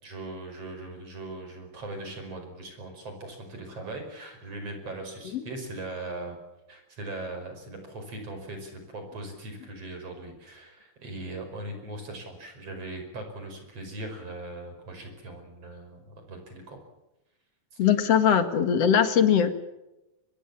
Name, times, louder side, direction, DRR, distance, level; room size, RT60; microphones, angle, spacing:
voice 1, 0.0-6.4 6.7-16.8 17.8-17.9, right 2 dB, 40° right, 5 dB, 6.3 m, -39 dB
voice 2, 17.8-19.5, left 8 dB, 50° left, 10 dB, 2.5 m, -21 dB
25.0 x 20.5 x 7.3 m, 0.96 s
omnidirectional pair, 4.1 m